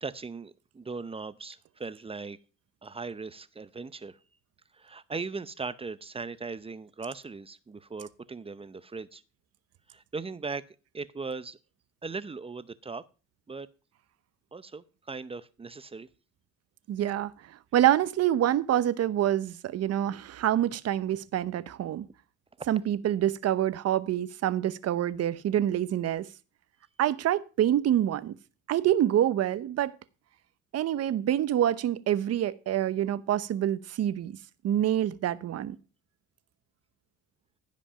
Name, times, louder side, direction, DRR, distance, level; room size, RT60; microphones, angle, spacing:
voice 1, 0.0-2.4 2.8-4.2 4.7-9.2 9.9-10.6 10.9-11.6 12.0-13.0 13.5-13.7 14.5-16.1, right 4 dB, 20° right, 0.6 m, -38 dB
voice 2, 16.9-22.1 22.7-26.3 27.0-28.4 28.7-29.9 30.7-34.4 34.6-35.8, right 11 dB, 55° right, 0.8 m, -26 dB
15.5 x 5.3 x 5.6 m
cardioid pair, 90°, 30 cm